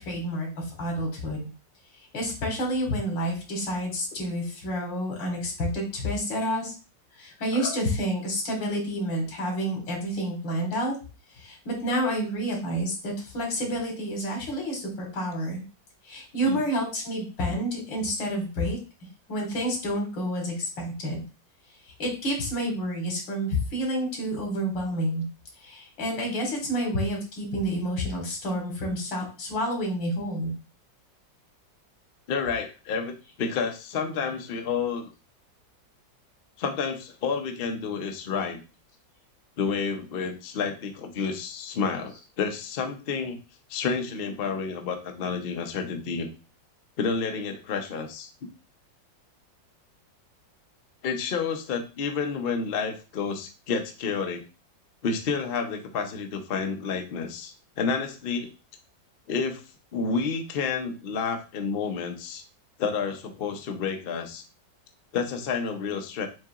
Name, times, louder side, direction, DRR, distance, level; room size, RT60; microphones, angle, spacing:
voice 1, 0.0-1.5 2.1-6.7 7.1-10.9 11.4-15.6 16.1-18.8 19.3-21.2 22.0-25.2 25.6-30.5, equal, 90° left, 0 dB, 2.5 m, -29 dB
voice 2, 32.3-35.1 36.6-38.6 39.6-43.4 43.7-46.3 47.0-48.3 51.0-54.4 55.0-58.5 59.3-59.6 59.9-62.4 62.8-64.4 65.1-66.3, left 5 dB, 65° left, 4 dB, 0.5 m, -30 dB
7.4 x 2.9 x 2.4 m, 0.32 s
omnidirectional pair, 2.0 m